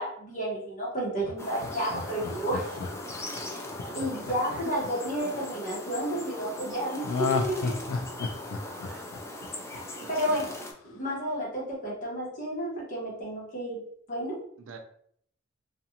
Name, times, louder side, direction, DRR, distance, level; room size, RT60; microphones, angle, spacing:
voice 1, 0.0-2.8 3.4-3.7 3.9-7.7 9.7-9.8 10.1-10.5 10.8-13.8 14.1-14.4, right 1 dB, 40° left, -5 dB, 1.1 m, -31 dB
Laughter, 1.2-5.5 7.0-10.0 10.4-10.5, left 4 dB, 85° left, 0.4 m, -33 dB
sound 1, 1.4-10.7, left 2 dB, 15° left, 0.3 m, -39 dB
voice 2, 10.0-10.4 14.6-14.8, right 5 dB, 85° right, 5 dB, 0.4 m, -45 dB
2.5 x 2.4 x 2.8 m, 0.66 s
head